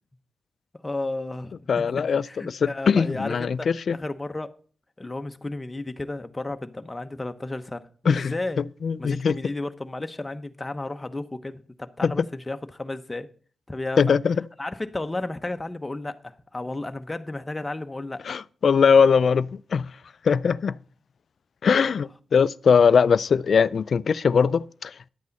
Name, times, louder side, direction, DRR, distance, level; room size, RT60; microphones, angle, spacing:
voice 1, 0.8-4.5 5.0-8.6 9.0-13.3 13.7-14.2 14.6-18.4, left 2 dB, 20° left, 0.9 m, -33 dB
voice 2, 1.7-4.0 8.1-9.4 12.0-12.1 14.0-14.4 18.3-19.9 20.2-20.8 21.6-25.1, left 6 dB, 65° left, 0.4 m, -21 dB
11.0 x 8.2 x 4.0 m
cardioid pair, 80°, 0 cm